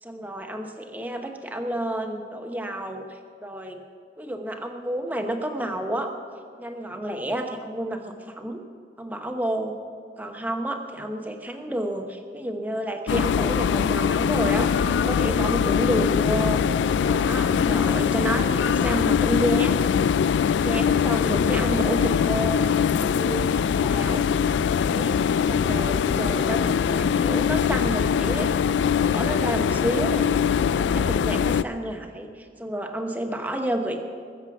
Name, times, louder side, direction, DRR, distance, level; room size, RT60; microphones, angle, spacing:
voice 1, 0.0-3.8 4.2-6.1 6.6-8.6 9.0-9.7 10.2-16.6 17.0-19.8 20.5-22.7 23.0-23.5 23.8-24.3 24.9-25.2 25.5-28.5 28.9-30.3 30.6-34.0, right 1 dB, 10° right, 4 dB, 1.0 m, -30 dB
sound 1, 13.1-31.6, left 7 dB, 85° left, 0.3 m, -22 dB
20.5 x 7.7 x 6.0 m, 2.2 s
head